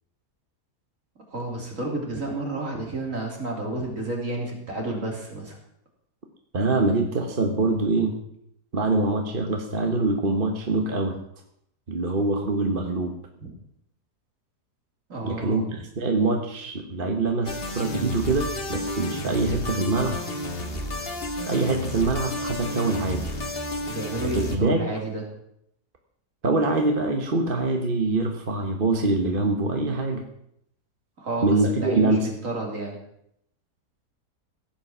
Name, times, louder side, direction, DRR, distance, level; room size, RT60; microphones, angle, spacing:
voice 1, 1.3-5.6 13.4-13.5 15.1-15.7 23.9-25.2 31.2-33.0, right 2 dB, 50° right, 0 dB, 3.5 m, -31 dB
voice 2, 6.5-8.2 8.7-11.2 11.9-13.1 15.2-20.2 21.5-23.3 24.2-24.9 26.4-30.2 31.4-32.3, right 2 dB, 35° right, 3 dB, 1.3 m, -24 dB
sound 1, 17.5-24.6, left 1 dB, 35° left, 1.7 m, -32 dB
16.0 x 8.6 x 6.1 m, 0.75 s
omnidirectional pair, 1.7 m